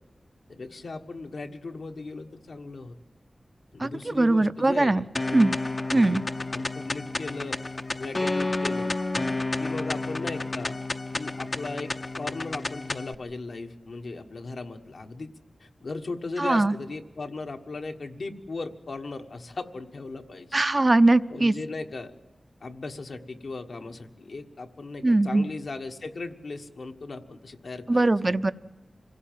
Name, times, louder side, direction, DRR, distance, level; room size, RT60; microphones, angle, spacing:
voice 1, 0.5-3.0 3.7-5.0 5.9-6.2 6.5-7.6 8.0-8.9 9.6-10.8 11.1-15.3 15.6-20.5 21.3-22.1 22.6-28.3, left 3 dB, 80° left, 5 dB, 1.5 m, -37 dB
voice 2, 3.8-5.0 5.3-5.6 5.9-6.2 16.4-16.7 20.5-21.5 25.0-25.5 27.9-28.5, right 2 dB, 40° right, 12 dB, 0.7 m, -21 dB
sound 1, 5.2-13.2, left 2 dB, 45° left, 0.7 m, -30 dB
26.0 x 17.0 x 7.5 m, 1.2 s
wide cardioid pair, 55°, 0 cm